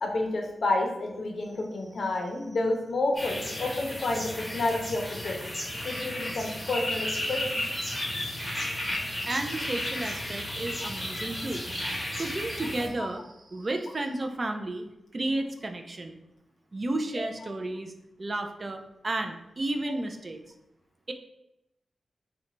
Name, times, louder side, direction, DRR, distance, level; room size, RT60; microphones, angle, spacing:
voice 1, 0.0-5.5 5.8-7.6 10.8-10.9, left 2 dB, 55° left, 2 dB, 0.6 m, -30 dB
sound 1, 3.1-12.9, left 1 dB, 10° left, 0.8 m, -33 dB
voice 2, 9.2-14.8 15.1-16.2 16.7-17.9 18.2-20.4 21.1-21.2, right 2 dB, 30° right, 5 dB, 0.3 m, -33 dB
3.7 x 2.2 x 3.0 m, 0.87 s
wide cardioid pair, 165°, 0 cm